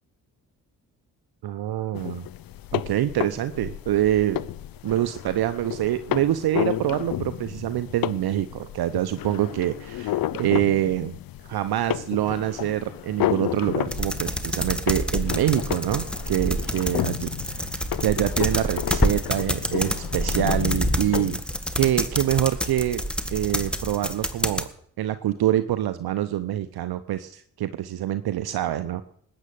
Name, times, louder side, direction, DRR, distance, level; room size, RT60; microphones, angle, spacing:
voice 1, 1.4-2.3 2.7-4.4 4.8-11.2 11.4-21.4 21.8-23.0 23.3-24.7 25.0-29.0, right 12 dB, 55° right, 12 dB, 0.9 m, -25 dB
sound 1, 1.9-21.4, left 13 dB, 50° left, 0.7 m, -32 dB
sound 2, 13.9-24.7, equal, ahead, 1.7 m, -28 dB
19.5 x 8.9 x 7.0 m, 0.63 s
hypercardioid pair, 45°, 44 cm